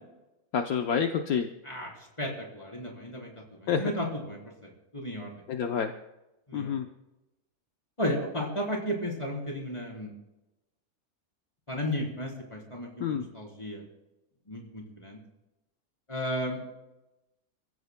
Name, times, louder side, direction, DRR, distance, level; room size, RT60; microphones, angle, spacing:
voice 1, 0.5-1.5 3.7-3.9 5.5-5.9 6.5-6.9 13.0-13.2, left 7 dB, 70° left, 4 dB, 1.2 m, -28 dB
voice 2, 1.6-5.3 6.5-6.7 8.0-10.1 11.7-13.8 14.5-15.2 16.1-16.6, equal, 20° left, -2 dB, 3.9 m, -34 dB
28.0 x 16.0 x 2.2 m, 0.97 s
omnidirectional pair, 1.7 m